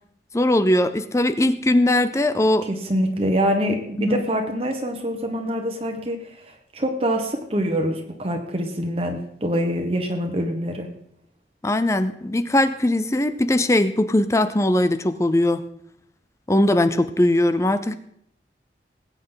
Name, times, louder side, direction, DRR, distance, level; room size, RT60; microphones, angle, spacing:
voice 1, 0.3-2.7 4.0-4.3 11.6-15.6 16.5-17.9, left 1 dB, 15° left, 11 dB, 0.5 m, -20 dB
voice 2, 2.6-10.9, equal, 35° right, 4 dB, 1.2 m, -25 dB
20.0 x 8.8 x 3.9 m, 0.73 s
head